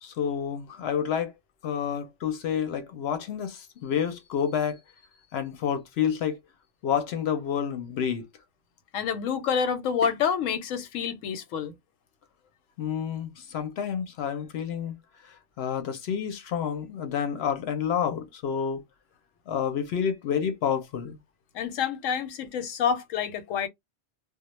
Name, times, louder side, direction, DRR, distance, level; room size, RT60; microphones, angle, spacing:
voice 1, 0.0-1.3 1.6-4.8 5.3-6.4 6.8-8.3 12.8-15.0 15.2-18.8 19.5-21.2, left 8 dB, 65° left, 0.7 m, -29 dB
voice 2, 8.9-11.7 21.5-23.7, left 7 dB, 90° left, 1.0 m, -28 dB
2.2 x 2.0 x 2.9 m
omnidirectional pair, 1.3 m